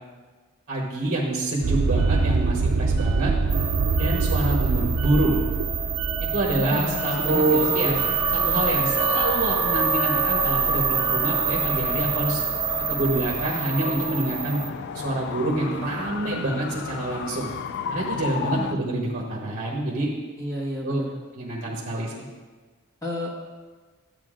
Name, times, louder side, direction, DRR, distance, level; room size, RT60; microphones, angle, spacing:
voice 1, 0.7-3.3 4.0-5.5 6.3-8.0 8.3-12.4 12.9-14.7 14.9-17.5 17.9-20.1 20.8-21.0 21.3-22.2, right 2 dB, 45° right, -3 dB, 1.1 m, -26 dB
sound 1, 1.6-13.5, right 4 dB, 75° right, 0.4 m, -27 dB
sound 2, 3.5-14.7, right 5 dB, 20° right, 0.5 m, -26 dB
voice 2, 6.5-8.0 18.5-18.8 20.4-21.2 23.0-23.3, equal, 15° left, -3 dB, 1.4 m, -32 dB
sound 3, 6.6-18.7, left 6 dB, 55° left, 0.4 m, -35 dB
12.0 x 7.9 x 2.5 m, 1.4 s
head